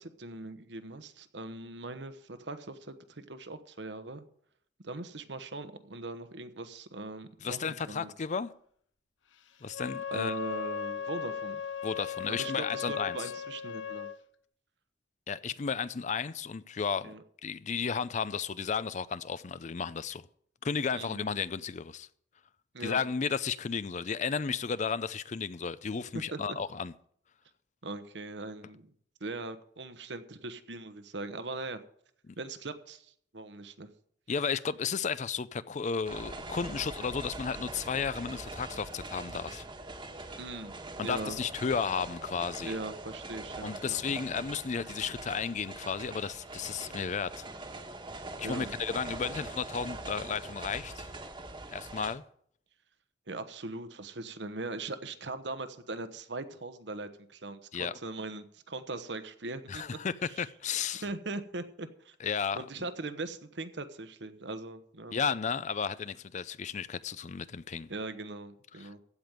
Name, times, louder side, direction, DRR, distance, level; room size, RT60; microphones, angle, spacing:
voice 1, 0.0-4.2 4.8-7.6 7.9-8.1 10.1-11.6 12.3-14.1 17.0-17.2 20.9-21.3 22.7-23.0 26.1-26.4 27.8-28.9 29.2-31.8 32.4-33.9 40.4-41.4 42.6-44.0 48.4-48.7 53.3-59.8 60.2-60.4 61.0-62.1 62.5-65.2 67.9-69.0, right 2 dB, 70° right, 1.1 m, -40 dB
voice 2, 7.4-8.5 9.6-10.4 11.8-13.3 15.3-17.1 17.4-20.2 20.6-22.1 22.8-26.9 32.3-32.4 34.3-39.6 41.0-42.8 43.6-47.4 48.4-51.1 51.7-52.2 57.7-57.9 59.7-61.0 62.2-62.6 65.1-67.9 68.8-68.9, left 6 dB, 40° left, 0.4 m, -33 dB
Wind instrument woodwind instrument, 9.7-14.2, left 7 dB, 85° left, 0.8 m, -37 dB
sound 1, 36.0-52.1, right 2 dB, 25° right, 1.4 m, -43 dB
15.5 x 5.2 x 9.2 m
head